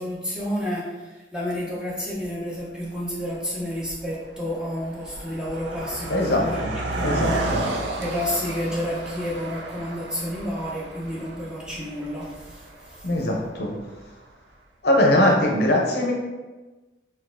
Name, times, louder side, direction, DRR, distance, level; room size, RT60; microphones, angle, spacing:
voice 1, 0.0-6.6 6.9-7.5 8.0-13.1, equal, 5° right, -7 dB, 0.6 m, -30 dB
Car passing by, 2.2-2.3 3.1-3.3 3.6-14.0, right 2 dB, 75° right, 0.4 m, -33 dB
voice 2, 6.1-6.4 7.0-7.3 13.0-13.7 14.8-16.1, left 1 dB, 60° left, -1 dB, 0.6 m, -20 dB
3.9 x 2.6 x 2.5 m, 1.2 s
head